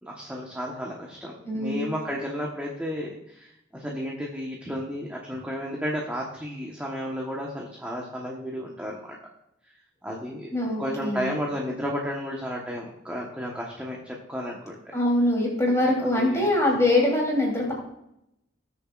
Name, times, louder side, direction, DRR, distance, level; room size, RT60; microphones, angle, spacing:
voice 1, 0.0-9.2 9.6-9.7 10.0-10.5 10.8-14.9 16.0-16.5, equal, 5° right, -2 dB, 1.2 m, -33 dB
voice 2, 1.4-1.8 10.5-11.3 14.9-17.7, left 1 dB, 15° left, -3 dB, 3.4 m, -23 dB
19.5 x 7.0 x 2.5 m, 0.82 s
head